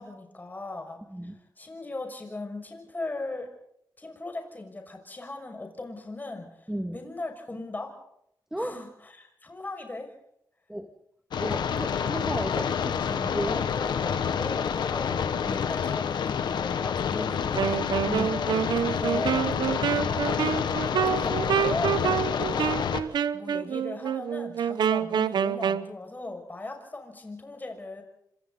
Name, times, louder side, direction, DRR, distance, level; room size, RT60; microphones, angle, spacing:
voice 1, 0.0-3.5 4.0-8.0 8.6-10.1 13.4-17.8 18.1-18.5 18.8-19.6 20.1-23.0 23.3-28.0, left 2 dB, 25° left, 4 dB, 6.2 m, -38 dB
voice 2, 6.7-7.0 8.5-8.7 10.7-10.9 11.4-13.6 15.5-15.6 17.2-17.4 18.1-18.3, right 1 dB, 5° right, 6 dB, 2.1 m, -34 dB
sound 1, 11.3-23.0, left 7 dB, 85° left, 1.7 m, -28 dB
Wind instrument woodwind instrument, 17.5-25.9, right 8 dB, 80° right, 1.0 m, -27 dB
28.5 x 26.0 x 4.1 m, 0.74 s
cardioid pair, 95°, 7 cm